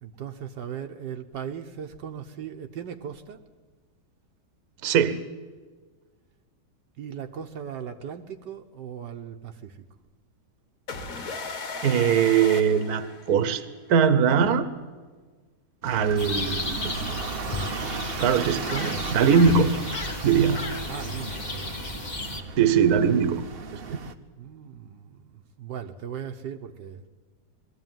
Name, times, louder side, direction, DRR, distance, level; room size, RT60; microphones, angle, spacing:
voice 1, 0.0-3.4 7.0-9.8 20.5-21.9 23.8-24.1 24.4-27.1, right 8 dB, 75° right, 4 dB, 1.5 m, -38 dB
voice 2, 4.8-5.2 11.8-13.6 13.9-14.7 15.8-16.9 18.2-19.7 20.2-20.6 22.6-23.4 23.9-24.0, right 7 dB, 60° right, 12 dB, 1.5 m, -21 dB
sound 1, 10.9-13.7, left 4 dB, 50° left, 1.8 m, -36 dB
sound 2, 15.8-24.1, right 4 dB, 45° right, 0.8 m, -36 dB
sound 3, 16.2-22.4, left 2 dB, 30° left, 1.2 m, -33 dB
21.5 x 14.0 x 9.1 m, 1.4 s
omnidirectional pair, 1.9 m